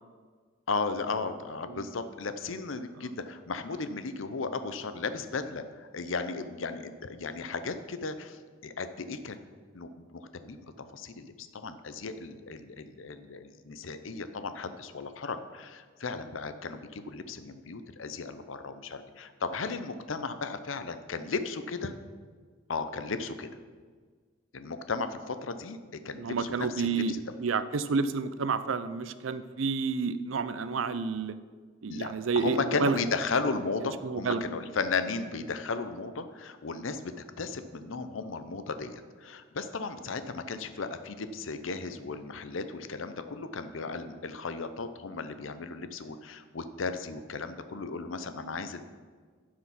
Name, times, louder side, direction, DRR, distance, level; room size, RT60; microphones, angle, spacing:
voice 1, 0.7-9.4 9.7-10.6 10.9-21.9 22.7-23.5 24.5-25.8 26.0-27.3 31.9-48.8, left 4 dB, 80° left, 10 dB, 0.7 m, -35 dB
voice 2, 26.2-27.1 27.4-31.4 31.8-33.0 34.0-34.4, right 5 dB, 85° right, 13 dB, 0.5 m, -30 dB
11.5 x 4.9 x 5.8 m, 1.5 s
head